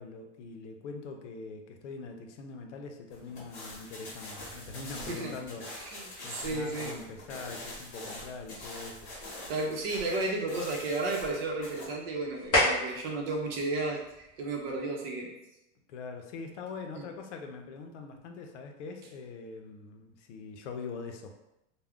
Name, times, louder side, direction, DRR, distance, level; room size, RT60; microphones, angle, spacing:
voice 1, 0.0-5.7 6.2-9.1 15.9-21.3, left 4 dB, 90° left, 5 dB, 0.6 m, -43 dB
sound 1, 3.1-11.9, left 1 dB, 35° left, 0.9 m, -44 dB
voice 2, 5.8-6.9 9.5-15.3 16.9-17.0, right 2 dB, 60° right, 0 dB, 0.7 m, -33 dB
sound 2, 6.9-14.9, left 1 dB, 15° left, 0.7 m, -36 dB
2.3 x 2.1 x 3.4 m, 0.88 s
supercardioid pair, 175°, 35 cm